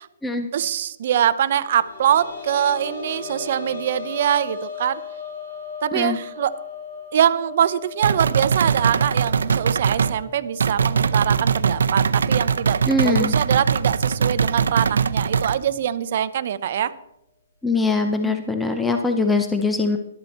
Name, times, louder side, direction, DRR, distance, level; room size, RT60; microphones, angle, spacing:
voice 1, 0.5-5.0 5.8-6.6 7.1-16.9 18.2-18.3, right 9 dB, 45° right, 13 dB, 0.6 m, -23 dB
sound 1, 1.4-12.9 13.2-13.3 14.9-15.0, left 6 dB, 65° left, 6.1 m, -38 dB
sound 2, 8.0-10.2 10.6-15.6, right 6 dB, 85° right, 0.6 m, -21 dB
voice 2, 12.9-13.3 17.6-20.0, left 3 dB, 5° left, 5 dB, 0.5 m, -22 dB
12.0 x 12.0 x 4.2 m, 0.83 s
hypercardioid pair, 165°, 0 cm